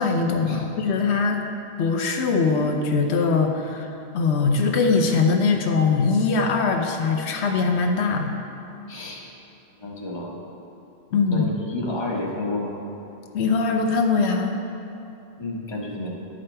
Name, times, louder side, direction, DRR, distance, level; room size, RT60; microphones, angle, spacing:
voice 1, 0.0-1.5 1.8-8.4 11.1-11.5 13.3-14.6, left 4 dB, 85° left, 3 dB, 0.9 m, -22 dB
voice 2, 8.9-9.2 9.8-10.3 11.3-12.8 15.4-16.1, left 1 dB, 25° left, -3 dB, 1.1 m, -30 dB
11.0 x 5.1 x 4.4 m, 2.8 s
omnidirectional pair, 1.1 m